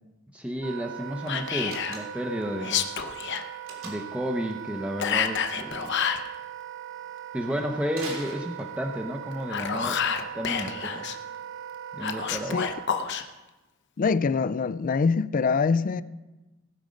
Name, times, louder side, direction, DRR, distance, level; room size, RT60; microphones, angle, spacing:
voice 1, 0.3-2.8 3.8-5.9 7.3-10.0 10.3-11.1 11.9-12.6, equal, 5° right, 0.7 m, -32 dB
Wind instrument woodwind instrument, 0.6-12.9, right 10 dB, 65° right, 0.5 m, -40 dB
Whispering, 1.3-2.0 2.6-3.4 5.0-6.3 9.3-11.2 12.0-13.2, left 7 dB, 60° left, 0.8 m, -28 dB
Slam, 1.6-2.4 3.7-4.2 7.9-9.0, right 3 dB, 85° right, 3.1 m, -41 dB
voice 2, 14.0-16.0, left 5 dB, 40° left, 0.4 m, -24 dB
19.0 x 6.3 x 5.2 m
head